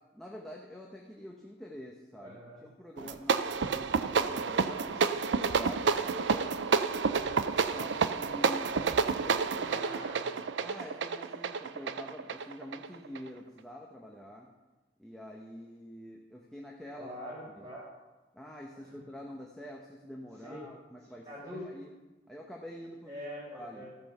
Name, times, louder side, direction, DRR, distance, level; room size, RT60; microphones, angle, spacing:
voice 1, 0.1-6.8 7.6-8.8 9.2-10.0 10.6-14.5 15.0-17.1 17.6-17.7 18.3-21.3 21.6-21.9 22.3-23.2 23.5-23.8, equal, 5° left, -2 dB, 0.9 m, -46 dB
voice 2, 2.2-2.7 4.9-5.2 9.6-10.5 16.9-17.8 18.8-18.9 20.4-20.7 21.1-21.7 23.1-23.9, equal, 30° right, -11 dB, 4.7 m, -44 dB
sound 1, 3.0-13.3, right 5 dB, 80° right, 0.5 m, -29 dB
14.5 x 5.5 x 6.8 m, 1.1 s
head